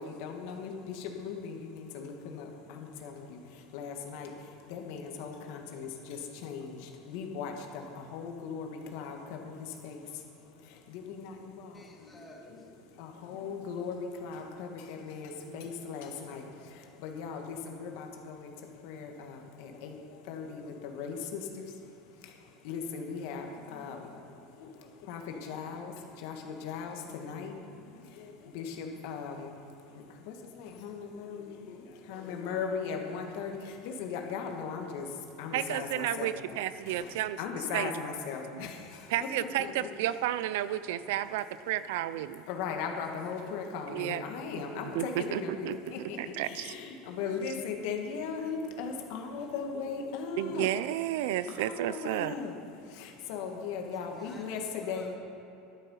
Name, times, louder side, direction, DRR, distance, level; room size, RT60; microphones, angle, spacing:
voice 1, 0.0-12.2 12.9-36.6 36.9-39.9 40.7-40.8 42.5-50.8 51.4-55.1, left 5 dB, 70° left, 3 dB, 1.6 m, -39 dB
voice 2, 11.7-13.1 53.8-55.2, left 2 dB, 10° left, 0 dB, 1.9 m, -53 dB
voice 3, 35.5-37.4 37.7-37.9 38.5-38.6 39.1-42.5 43.9-44.2 44.9-45.8 46.4-46.7 47.4-47.5 50.4-52.4, right 13 dB, 75° right, 15 dB, 0.4 m, -32 dB
11.5 x 9.1 x 5.6 m, 2.9 s
supercardioid pair, 125°, 0 cm